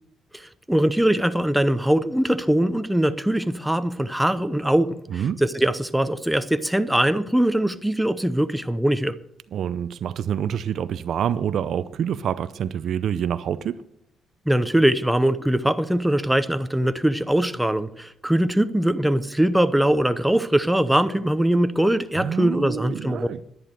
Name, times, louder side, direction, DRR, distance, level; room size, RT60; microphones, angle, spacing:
voice 1, 0.3-9.2 14.5-23.3, right 1 dB, 5° right, 0.8 m, -22 dB
voice 2, 5.1-5.4 9.5-13.8 22.2-23.4, right 9 dB, 65° right, 0.6 m, -27 dB
11.0 x 10.5 x 6.6 m
cardioid pair, 90°, 0 cm